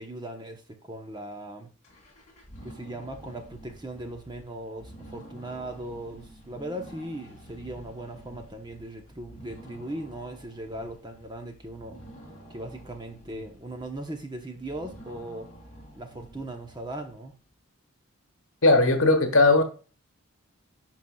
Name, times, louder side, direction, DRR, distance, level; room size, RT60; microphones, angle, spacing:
voice 1, 0.0-1.7 2.6-12.1 12.5-15.5 16.0-17.4, right 1 dB, 20° right, 0.9 m, -38 dB
sound 1, 1.8-17.3, right 1 dB, 35° left, 2.7 m, -49 dB
voice 2, 18.6-19.6, left 2 dB, 70° left, 1.3 m, -18 dB
11.0 x 4.6 x 2.3 m
head